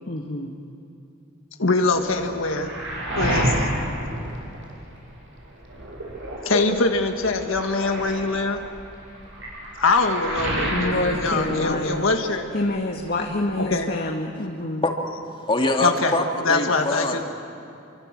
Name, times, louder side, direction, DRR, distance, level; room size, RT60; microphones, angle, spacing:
voice 1, 0.1-0.5 10.7-12.1 12.5-14.8, left 2 dB, 50° left, 1 dB, 1.7 m, -27 dB
voice 2, 1.6-2.7 3.2-3.7 6.4-8.6 9.8-12.4 13.6-13.9 15.8-17.2, left 3 dB, 85° left, 5 dB, 1.7 m, -23 dB
Waves surf, 1.9-5.1 5.5-12.4 12.6-13.6, right 1 dB, 65° right, 7.2 m, -30 dB
voice 3, 14.5-14.9 15.5-16.2 16.5-17.2, left 2 dB, 25° left, 2 dB, 2.3 m, -24 dB
28.5 x 24.5 x 7.5 m, 2.6 s
head